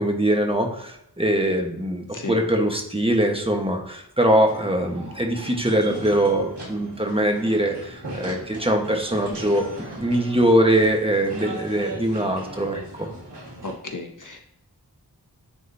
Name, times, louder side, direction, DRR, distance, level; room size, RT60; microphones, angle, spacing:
voice 1, 0.0-9.7 10.0-13.1, right 1 dB, 15° right, 2 dB, 1.2 m, -22 dB
sound 1, 4.5-13.7, right 1 dB, 85° right, 1.9 m, -38 dB
voice 2, 13.6-14.4, left 3 dB, 50° left, 4 dB, 0.9 m, -33 dB
9.7 x 3.8 x 2.7 m, 0.77 s
wide cardioid pair, 55°, 40 cm